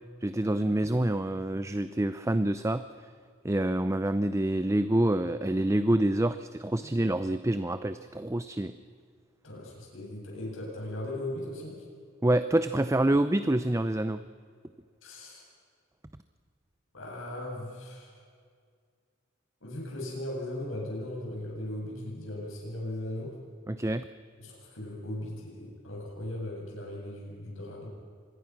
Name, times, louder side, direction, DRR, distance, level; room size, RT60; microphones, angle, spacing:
voice 1, 0.2-2.8 3.4-8.7 12.2-14.2 23.7-24.0, right 1 dB, 15° right, 12 dB, 0.6 m, -27 dB
voice 2, 9.4-11.8 15.0-15.4 16.9-18.1 19.6-23.4 24.4-27.9, left 1 dB, 75° left, -2 dB, 8.0 m, -38 dB
26.0 x 21.0 x 6.1 m, 2.1 s
head